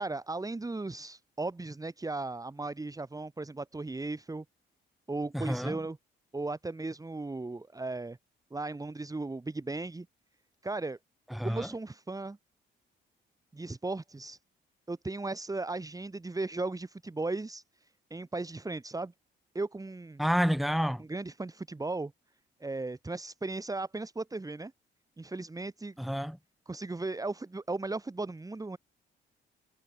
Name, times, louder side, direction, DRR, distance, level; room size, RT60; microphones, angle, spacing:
voice 1, 0.0-4.4 5.1-6.0 6.3-8.2 8.5-10.1 10.6-11.0 11.4-12.4 13.5-14.4 14.9-17.6 18.1-19.1 19.5-20.2 21.0-22.1 22.6-24.7 25.2-25.9 26.7-28.8, right 2 dB, 15° right, 3.0 m, -36 dB
voice 2, 5.3-5.8 11.3-11.7 20.2-21.0 26.0-26.4, equal, ahead, 4.7 m, -29 dB
cardioid pair, 90°, 20 cm